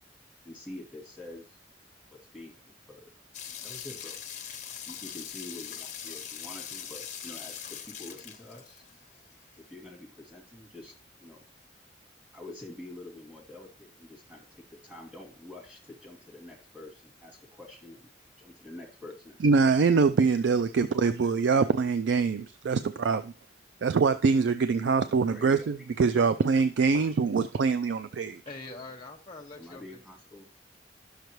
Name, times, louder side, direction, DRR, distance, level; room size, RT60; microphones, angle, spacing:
voice 1, 0.4-1.6 2.1-2.6 2.9-3.1 3.6-4.2 4.9-8.8 9.6-10.9 11.2-11.4 12.3-18.1 18.4-20.0 20.9-21.1 21.5-21.9 25.3-25.8 29.6-30.4, left 2 dB, 10° right, 2.7 m, -46 dB
sound 1, 3.3-9.2, left 8 dB, 40° left, 1.0 m, -41 dB
voice 2, 19.4-23.3 23.8-28.4, right 5 dB, 75° right, 0.4 m, -24 dB
voice 3, 28.4-30.0, left 2 dB, 25° left, 1.1 m, -43 dB
11.5 x 6.6 x 3.1 m
head